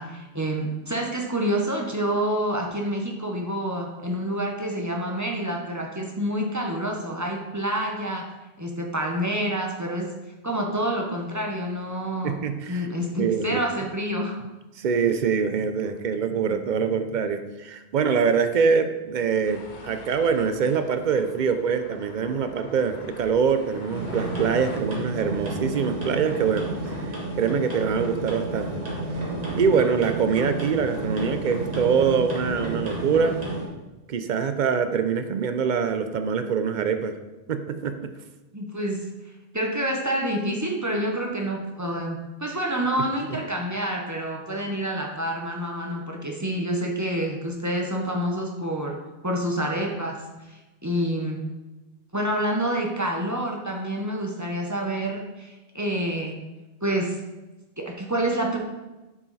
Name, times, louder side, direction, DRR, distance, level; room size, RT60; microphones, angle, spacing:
voice 1, 0.0-8.3 8.6-10.1 10.4-12.4 12.7-14.4 38.5-39.0 39.5-49.0 49.2-50.2 50.5-51.4 52.1-56.3 56.8-57.2 57.8-58.6, right 1 dB, 20° right, 0 dB, 0.8 m, -28 dB
voice 2, 12.2-12.9 13.2-13.6 14.8-26.7 27.0-28.7 29.5-33.4 34.1-37.1 37.5-38.1, right 6 dB, 55° right, 8 dB, 0.6 m, -24 dB
sound 1, 19.4-24.8, left 4 dB, 50° left, 0.8 m, -46 dB
sound 2, 23.9-33.7, right 2 dB, 40° right, 1.6 m, -31 dB
7.0 x 4.8 x 4.1 m, 1.1 s
omnidirectional pair, 1.1 m